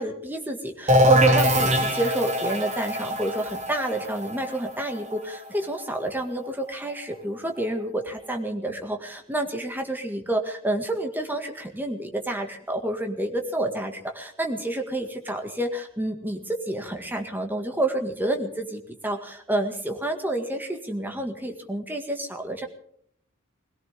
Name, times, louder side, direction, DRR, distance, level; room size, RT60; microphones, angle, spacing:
voice 1, 0.0-22.7, right 1 dB, 10° right, 4 dB, 1.9 m, -29 dB
sound 1, 0.9-6.5, equal, 35° right, 2.9 m, -23 dB
22.0 x 17.0 x 3.6 m, 0.65 s
head